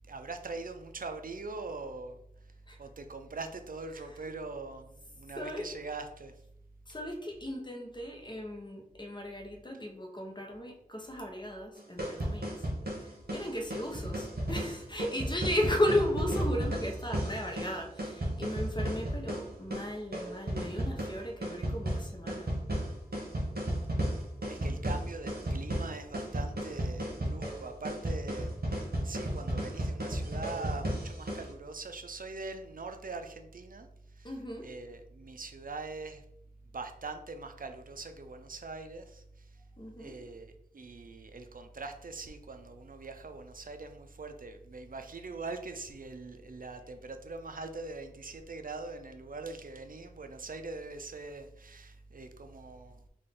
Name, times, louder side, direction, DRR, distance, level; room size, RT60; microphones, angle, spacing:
voice 1, 0.1-2.2 2.8-6.3 24.5-28.5 29.0-33.9 34.2-34.3 34.6-36.2 36.7-39.5 40.0-53.0, right 3 dB, 65° right, 7 dB, 0.4 m, -42 dB
voice 2, 4.0-4.4 5.3-5.7 6.9-12.7 13.0-22.5 34.2-34.7 39.8-40.2, left 1 dB, 30° left, 2 dB, 0.8 m, -35 dB
sound 1, 11.8-31.5, right 1 dB, 80° right, 1.0 m, -34 dB
3.8 x 2.5 x 3.5 m, 0.77 s
wide cardioid pair, 40°, 16 cm